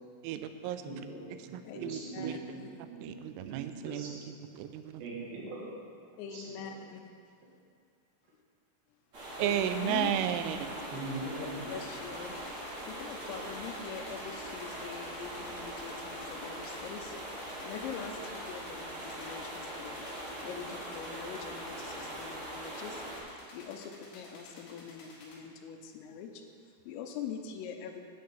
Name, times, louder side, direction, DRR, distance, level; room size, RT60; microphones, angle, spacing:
voice 1, 0.2-0.8 1.5-2.4 3.0-5.0 9.4-10.7, right 10 dB, 90° right, 9 dB, 3.4 m, -34 dB
voice 2, 0.8-4.1 5.0-5.7 6.3-6.4 10.9-11.7, right 2 dB, 65° right, -4 dB, 3.9 m, -41 dB
voice 3, 1.6-2.8 6.2-7.0 9.4-10.1 11.7-20.1 20.4-23.0 23.3-28.0, left 7 dB, 85° left, 5 dB, 3.3 m, -44 dB
sound 1, 9.1-23.2, right 1 dB, 35° right, 2.6 m, -41 dB
sound 2, 11.7-25.4, left 2 dB, 60° left, 3.1 m, -54 dB
9.2 x 6.5 x 8.2 m, 2.2 s
omnidirectional pair, 5.9 m